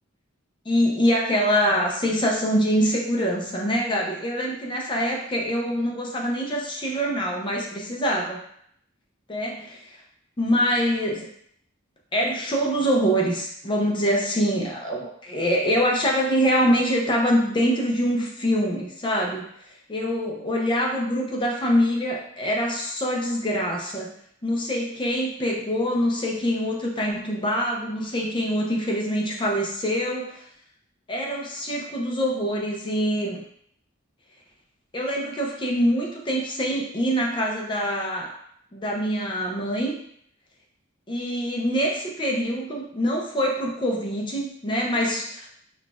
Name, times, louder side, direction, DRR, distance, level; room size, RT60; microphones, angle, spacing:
voice 1, 0.7-8.4 9.3-9.5 9.9-10.0 10.4-11.3 12.1-19.4 19.9-24.1 24.4-30.4 31.1-33.4 34.9-38.3 38.7-40.0 41.1-45.5, equal, 25° left, -1 dB, 0.5 m, -24 dB
5.8 x 2.4 x 2.4 m, 0.68 s
head